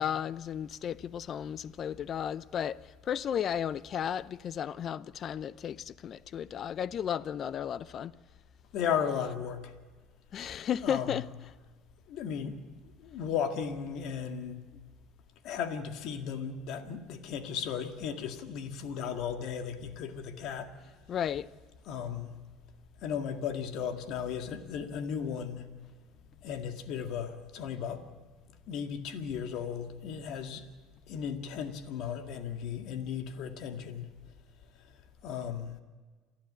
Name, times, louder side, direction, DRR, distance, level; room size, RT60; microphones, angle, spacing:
voice 1, 0.0-8.2 10.3-11.3 21.1-21.5, left 9 dB, 50° left, 0.6 m, -34 dB
voice 2, 8.7-9.7 10.8-11.2 12.1-12.6 13.0-14.7 15.4-20.7 21.9-22.3 23.0-25.7 26.4-28.0 28.7-30.6 31.1-34.1 35.2-35.7, left 7 dB, 65° left, 1.9 m, -35 dB
28.5 x 12.0 x 8.8 m
supercardioid pair, 80°, 0 cm